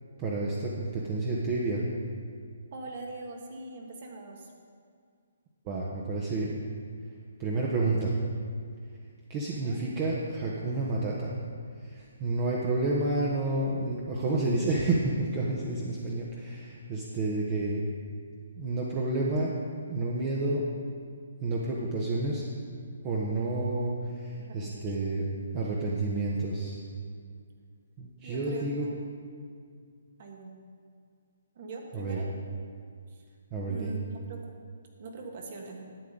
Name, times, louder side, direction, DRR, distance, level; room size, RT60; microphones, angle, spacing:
voice 1, 0.2-1.8 5.6-6.6 7.4-8.1 9.3-11.3 11.8-17.8 18.6-19.6 19.9-20.6 21.4-22.4 23.0-25.2 25.5-26.8 28.0-28.9 31.9-32.2 33.5-33.9, right 2 dB, 30° right, -4 dB, 1.1 m, -30 dB
voice 2, 2.7-4.5 9.5-9.8 24.4-25.1 28.2-28.9 30.2-30.5 31.6-32.3 33.1-33.2 33.7-34.5 35.0-35.8, right 3 dB, 50° right, 1 dB, 1.7 m, -42 dB
12.0 x 8.5 x 3.9 m, 2.1 s
hypercardioid pair, 150°, 0 cm